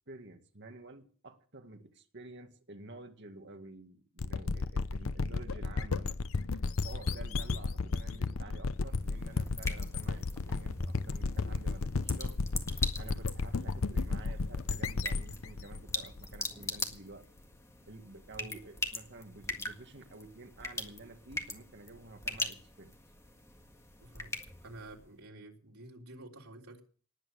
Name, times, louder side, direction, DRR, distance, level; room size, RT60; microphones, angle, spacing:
voice 1, 0.1-6.2 6.8-12.4 13.0-17.3 17.9-23.0, right 2 dB, 55° right, 2.0 m, -50 dB
sound 1, 4.2-16.8, left 3 dB, 70° left, 0.7 m, -33 dB
sound 2, 8.7-25.1, left 2 dB, 15° left, 1.7 m, -42 dB
voice 2, 24.0-26.8, right 2 dB, 85° right, 3.5 m, -50 dB
19.0 x 9.1 x 6.4 m
head